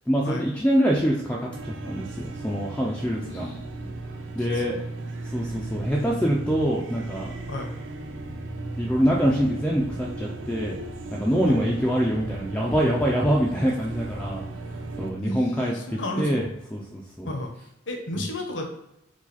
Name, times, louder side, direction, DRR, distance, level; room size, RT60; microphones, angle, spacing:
voice 1, 0.1-3.5 4.3-4.8 5.3-7.3 8.8-10.8 11.1-14.4 15.0-17.3, equal, 5° left, -3 dB, 0.5 m, -25 dB
sound 1, 1.5-15.1, right 2 dB, 80° right, 0.5 m, -36 dB
voice 2, 3.1-3.9 4.5-4.7 7.5-7.7 11.4-11.7 15.2-16.4 17.2-17.5 17.9-18.7, left 1 dB, 75° left, 3 dB, 1.0 m, -33 dB
4.7 x 2.4 x 4.1 m, 0.83 s
head